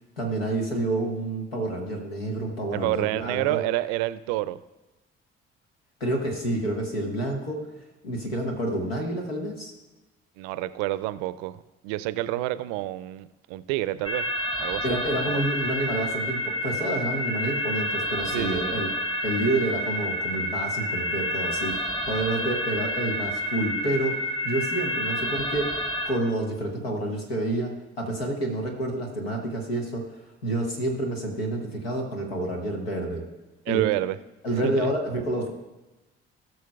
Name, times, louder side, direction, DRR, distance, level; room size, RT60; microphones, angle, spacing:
voice 1, 0.2-3.6 6.0-7.6 8.0-9.7 14.8-18.9 19.2-24.1 24.4-25.7 26.0-27.7 28.0-30.0 30.4-33.2 33.7-33.8 34.4-35.5, right 1 dB, 85° left, 2 dB, 1.3 m, -28 dB
voice 2, 2.7-4.6 10.4-11.6 11.8-14.3 14.6-15.0 15.2-15.4 18.3-18.8 33.7-34.2 34.6-34.9, right 16 dB, 70° right, 16 dB, 0.5 m, -28 dB
sound 1, 14.0-26.1, left 1 dB, 20° left, 2.3 m, -29 dB
18.5 x 6.2 x 2.3 m, 1.1 s
figure-of-eight pair, 45°, 29 cm